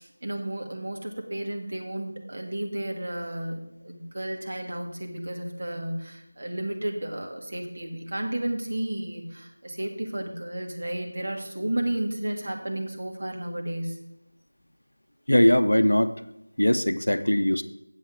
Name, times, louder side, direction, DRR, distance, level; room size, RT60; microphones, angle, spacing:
voice 1, 0.0-14.0, right 1 dB, 40° right, 1 dB, 1.4 m, -32 dB
voice 2, 15.3-16.1 16.6-17.6, left 1 dB, 75° left, 11 dB, 0.6 m, -20 dB
7.8 x 7.7 x 4.9 m, 0.84 s
figure-of-eight pair, 170°, 0 cm